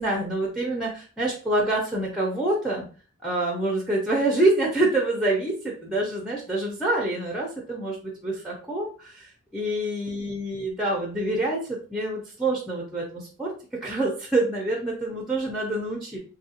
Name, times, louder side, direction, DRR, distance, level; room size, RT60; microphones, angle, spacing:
voice 1, 0.0-2.9 3.2-16.2, right 2 dB, ahead, -1 dB, 0.5 m, -26 dB
3.0 x 2.3 x 2.8 m, 0.38 s
head